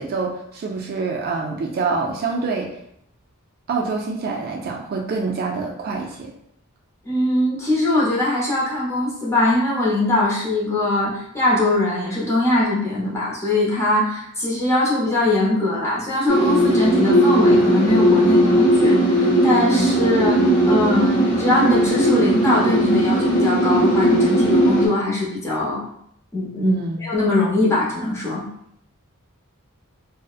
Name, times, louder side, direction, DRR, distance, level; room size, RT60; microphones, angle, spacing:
voice 1, 0.0-2.7 3.7-6.3 26.6-27.0, right 4 dB, 45° right, 0 dB, 0.3 m, -26 dB
voice 2, 7.0-25.8 26.3-26.7 27.0-28.5, left 2 dB, 15° left, -6 dB, 0.6 m, -21 dB
sound 1, 16.3-24.9, right 1 dB, 40° left, 0.9 m, -17 dB
2.7 x 2.0 x 2.3 m, 0.72 s
head